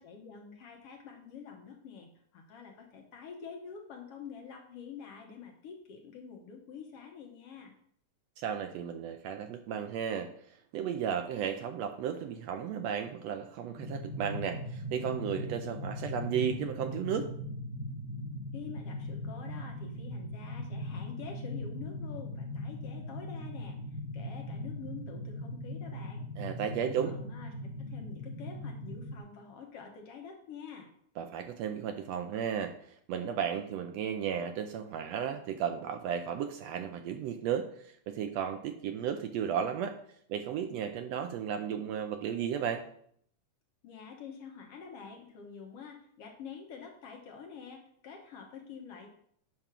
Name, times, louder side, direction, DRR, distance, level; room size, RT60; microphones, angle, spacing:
voice 1, 0.0-7.7 18.5-23.8 24.1-26.2 26.8-30.9 43.8-49.1, left 6 dB, 65° left, 2 dB, 1.8 m, -47 dB
voice 2, 8.4-10.3 10.7-17.3 26.4-27.1 31.2-32.7 33.1-40.0 40.3-42.8, right 8 dB, 75° right, 7 dB, 1.6 m, -34 dB
sound 1, 13.8-29.2, left 1 dB, 45° right, 1.9 m, -39 dB
7.4 x 5.2 x 6.0 m, 0.66 s
omnidirectional pair, 3.3 m